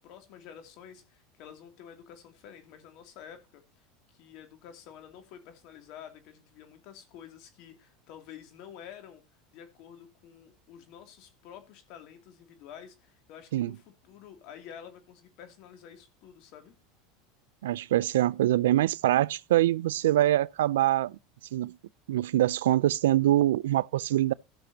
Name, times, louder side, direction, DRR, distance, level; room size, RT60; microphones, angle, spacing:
voice 1, 0.0-3.6 4.1-9.2 9.5-16.7, left 9 dB, 60° left, 2.6 m, -49 dB
voice 2, 17.6-21.2 21.5-21.7 22.1-24.3, right 14 dB, 85° right, 0.4 m, -24 dB
16.0 x 6.1 x 2.8 m
supercardioid pair, 115°, 0 cm